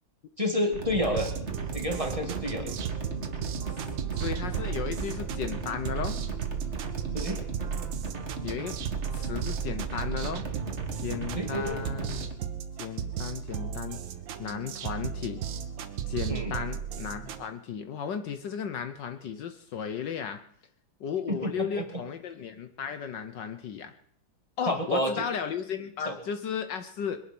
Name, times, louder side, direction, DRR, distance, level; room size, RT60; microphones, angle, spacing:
voice 1, 0.4-1.3 1.7-2.7 7.1-7.4 11.4-11.8 16.3-16.5 21.3-22.0 24.7-25.2 26.1-26.2, equal, 15° right, 3 dB, 1.9 m, -29 dB
sound 1, 0.7-12.3, right 4 dB, 35° right, 2.1 m, -36 dB
sound 2, 1.1-17.5, right 8 dB, 70° right, 1.7 m, -35 dB
voice 2, 4.1-6.2 8.4-8.8 9.1-10.4 11.0-12.3 12.8-14.0 14.4-15.4 16.1-20.4 21.0-23.9 24.6-27.2, left 7 dB, 65° left, 9 dB, 1.5 m, -35 dB
21.5 x 11.0 x 6.1 m, 0.65 s
omnidirectional pair, 2.2 m